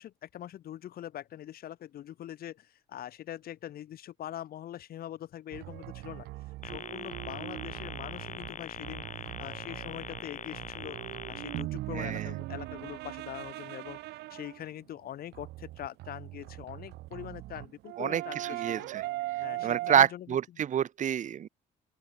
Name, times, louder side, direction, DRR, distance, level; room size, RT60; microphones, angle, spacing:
voice 1, 0.0-6.3 6.6-11.0 11.3-18.9 19.4-20.3, left 12 dB, 60° left, 7.9 m, -43 dB
sound 1, 5.5-14.6 15.3-20.0, right 18 dB, 85° right, 4.5 m, -40 dB
sound 2, 6.6-11.6, left 8 dB, 45° left, 5.5 m, -42 dB
voice 2, 11.9-12.3 18.0-19.0 19.6-21.5, right 9 dB, 45° right, 1.7 m, -28 dB
open air
cardioid pair, 110°, 17 cm